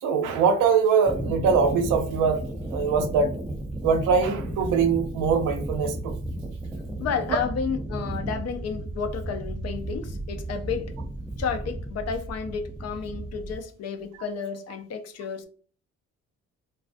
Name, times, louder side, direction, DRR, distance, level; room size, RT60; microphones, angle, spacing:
voice 1, 0.0-2.4 2.7-3.3 3.8-6.1, right 5 dB, 85° right, 0.5 m, -22 dB
sound 1, 1.1-13.6, right 1 dB, 5° right, 0.3 m, -34 dB
voice 2, 7.0-10.9 11.4-15.5, left 6 dB, 55° left, 0.5 m, -31 dB
2.3 x 2.3 x 2.4 m
cardioid pair, 90°, 30 cm